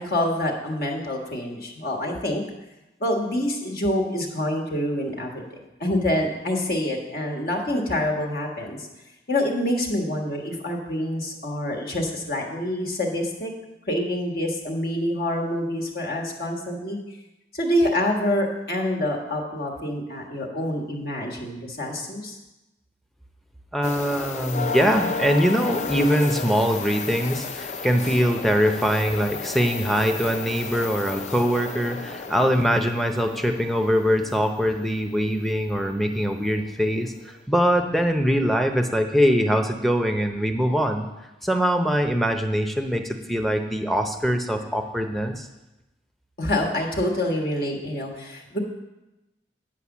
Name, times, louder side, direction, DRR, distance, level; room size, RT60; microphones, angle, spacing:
voice 1, 0.0-2.4 3.0-5.4 5.8-8.9 9.3-13.5 13.9-17.0 17.5-22.4 46.4-48.6, left 1 dB, 55° left, 0 dB, 1.6 m, -26 dB
voice 2, 23.7-41.1 41.4-45.5, equal, ahead, 5 dB, 0.6 m, -23 dB
sound 1, 23.8-34.5 36.5-36.6 37.1-37.3, left 4 dB, 40° left, 0.5 m, -33 dB
10.0 x 5.0 x 7.2 m, 1.0 s
head